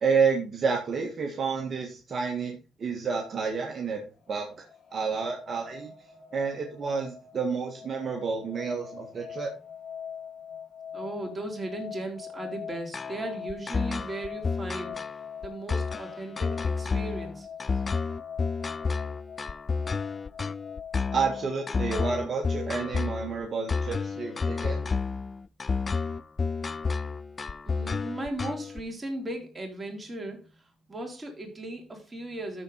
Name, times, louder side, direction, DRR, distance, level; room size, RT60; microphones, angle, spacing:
voice 1, 0.0-4.5 4.9-5.9 6.3-9.5 21.1-24.9, right 5 dB, 50° right, 1 dB, 1.9 m, -30 dB
sound 1, 4.1-22.3, left 7 dB, 65° left, 2.4 m, -43 dB
voice 2, 10.9-15.0 15.4-17.5 27.7-30.5 30.9-32.6, right 1 dB, 20° right, 1 dB, 4.0 m, -37 dB
sound 2, 12.9-28.8, left 4 dB, 30° left, 0.4 m, -30 dB
13.5 x 4.6 x 4.3 m, 0.33 s
cardioid pair, 90°, 0 cm